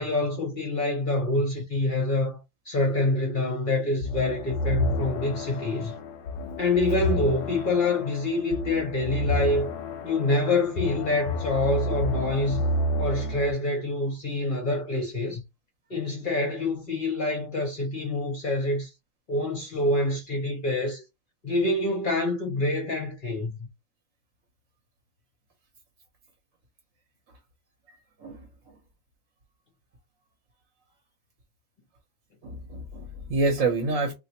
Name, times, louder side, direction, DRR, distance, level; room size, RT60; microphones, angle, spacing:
voice 1, 0.0-5.9 6.6-9.7 10.0-12.6 13.0-15.4 15.9-18.9 19.3-21.0 21.4-23.6, left 2 dB, 45° left, 1.0 m, -26 dB
sound 1, 4.0-13.5, left 1 dB, 75° left, 0.9 m, -30 dB
voice 2, 28.2-28.8 32.4-34.1, right 3 dB, 80° right, 1.3 m, -28 dB
3.2 x 2.7 x 2.9 m
omnidirectional pair, 1.3 m